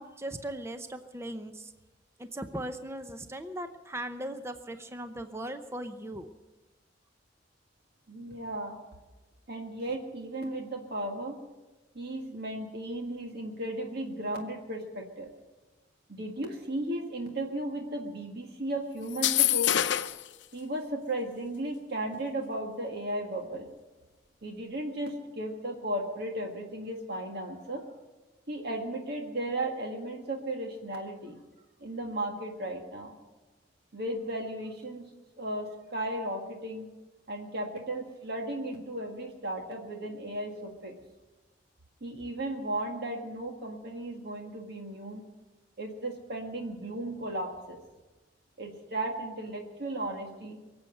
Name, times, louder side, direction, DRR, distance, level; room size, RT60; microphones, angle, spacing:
voice 1, 0.0-1.7 2.2-6.3, right 1 dB, 15° right, 8 dB, 0.7 m, -38 dB
voice 2, 8.1-8.8 9.5-11.4 12.0-15.3 16.1-19.7 20.5-23.7 24.4-27.8 28.5-31.4 31.8-33.1 33.9-35.1 35.4-36.9 37.3-40.9 42.0-45.2 45.8-47.8 48.6-50.6, right 1 dB, 60° right, 2 dB, 1.8 m, -35 dB
sound 1, 19.1-20.3, left 12 dB, 75° left, 0.7 m, -25 dB
23.5 x 7.9 x 7.9 m, 1.1 s
head